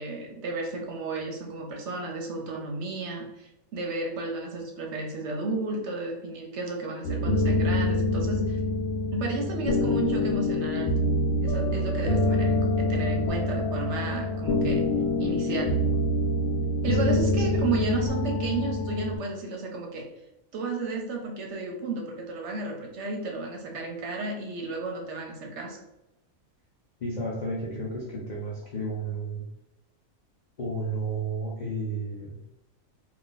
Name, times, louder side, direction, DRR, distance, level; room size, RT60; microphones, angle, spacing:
voice 1, 0.0-8.6 9.1-10.9 11.4-14.9 15.2-15.8 16.8-20.1 20.5-25.8, right 3 dB, 65° right, 1 dB, 0.8 m, -33 dB
sound 1, 7.0-19.2, left 1 dB, 70° left, 0.8 m, -26 dB
voice 2, 17.1-17.4 27.0-29.5 30.6-32.4, right 1 dB, 85° left, -4 dB, 0.4 m, -32 dB
2.5 x 2.3 x 3.7 m, 0.90 s
omnidirectional pair, 1.5 m